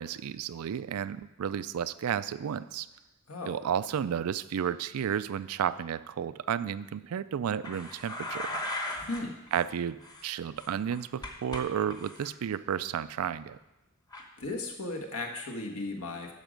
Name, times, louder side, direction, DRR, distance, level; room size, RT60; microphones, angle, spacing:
voice 1, 0.0-2.9 3.5-8.5 9.5-13.6, right 8 dB, 80° right, 15 dB, 0.4 m, -32 dB
voice 2, 3.3-3.6 9.0-9.4 14.4-16.3, left 2 dB, 75° left, 2 dB, 1.3 m, -36 dB
sound 1, 7.6-9.2 9.5-9.7 10.0-11.6 11.9-12.3 14.1-14.2, left 1 dB, 20° left, 0.9 m, -38 dB
9.1 x 6.3 x 5.2 m, 0.99 s
head